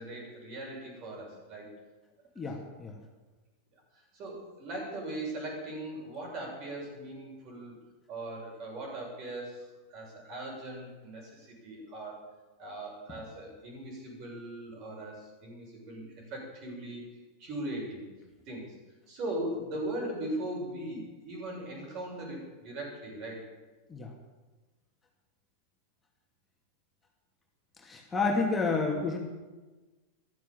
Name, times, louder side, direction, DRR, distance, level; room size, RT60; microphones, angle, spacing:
voice 1, 0.0-1.8 4.1-7.8 8.1-12.2 12.6-17.1 17.4-18.1 18.5-18.8 19.1-23.5, right 1 dB, 40° right, -1 dB, 7.1 m, -39 dB
voice 2, 2.4-3.0 23.9-24.1 27.8-29.2, left 4 dB, 15° left, 0 dB, 2.5 m, -30 dB
14.5 x 13.0 x 7.4 m, 1.2 s
figure-of-eight pair, 90°, 0 cm